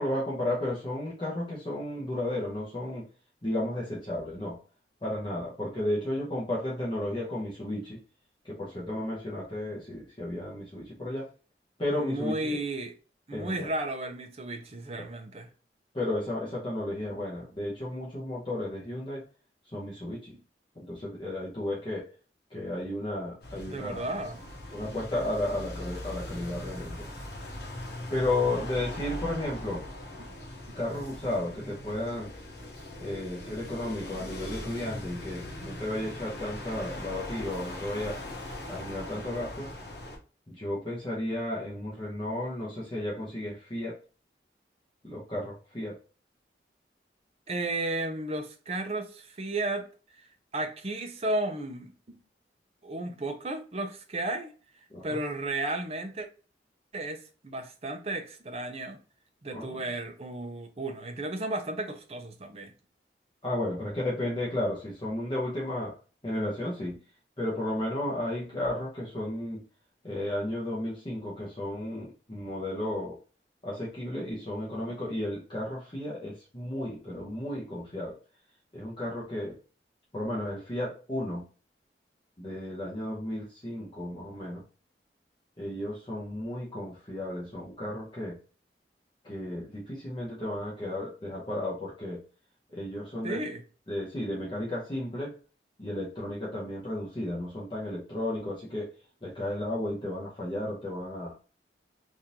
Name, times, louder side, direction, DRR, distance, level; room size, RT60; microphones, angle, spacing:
voice 1, 0.0-3.1 3.4-4.6 5.0-8.0 8.4-11.3 11.8-12.6 13.3-13.7 15.0-15.1 15.9-19.2 19.7-20.3 20.8-22.1 22.5-24.1 24.7-27.1 28.1-29.8 30.7-32.3 33.0-38.2 38.7-39.7 40.5-44.0 45.0-46.0 54.9-55.2 59.5-59.8 63.4-66.0 66.2-67.0 67.4-69.6 70.0-73.2 73.6-78.1 78.7-79.6 80.1-81.4 82.4-84.6 85.6-88.4 89.2-92.2 92.7-93.4 93.9-95.4 95.8-98.9 99.2-101.3, left 1 dB, 30° left, 0.9 m, -33 dB
voice 2, 11.9-12.9 13.3-15.5 23.7-24.4 30.2-30.3 47.5-49.9 50.5-52.2 52.8-54.5 55.0-56.3 56.9-59.0 59.4-62.7 93.2-93.6, right 2 dB, 35° right, 0.6 m, -33 dB
sound 1, 23.4-40.2, left 1 dB, 70° left, 1.1 m, -40 dB
3.6 x 2.6 x 2.8 m
head